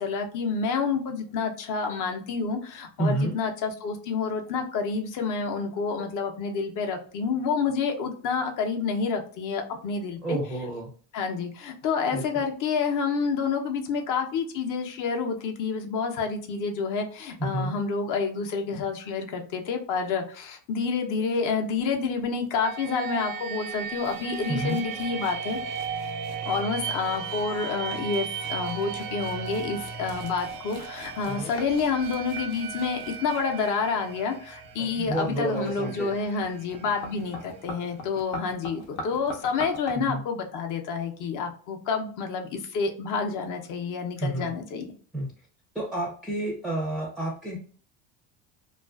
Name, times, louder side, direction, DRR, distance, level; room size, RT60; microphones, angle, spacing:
voice 1, 0.0-10.4 11.1-25.6 26.5-44.9, left 5 dB, 50° left, 4 dB, 0.6 m, -29 dB
voice 2, 3.0-3.4 10.2-10.9 12.1-12.2 17.4-17.7 24.5-24.8 31.3-31.5 34.8-36.1 39.9-40.2 44.2-44.5 45.1-45.3 45.7-47.6, right 1 dB, ahead, -2 dB, 0.4 m, -30 dB
sound 1, 22.6-38.2, right 7 dB, 80° right, 0.6 m, -36 dB
sound 2, 24.0-39.9, left 2 dB, 85° left, 0.8 m, -44 dB
2.4 x 2.3 x 2.3 m, 0.44 s
supercardioid pair, 110°, 40 cm